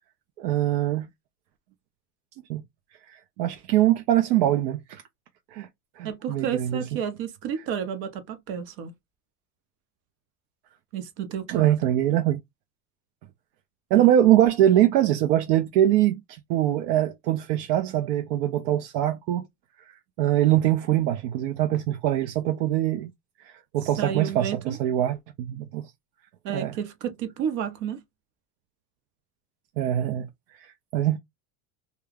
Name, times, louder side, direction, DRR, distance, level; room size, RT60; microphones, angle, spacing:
voice 1, 0.4-1.1 2.5-2.6 3.1-5.0 5.5-5.7 6.0-6.8 11.5-12.4 13.9-19.5 20.2-23.1 23.4-25.9 26.5-26.7 29.8-30.3 30.6-31.2, right 12 dB, 75° right, 0.6 m, -23 dB
voice 2, 6.0-8.9 10.9-11.7 13.9-14.1 23.8-24.8 26.4-28.0, right 8 dB, 55° right, 0.9 m, -31 dB
2.3 x 2.2 x 3.2 m
supercardioid pair, 120°, 48 cm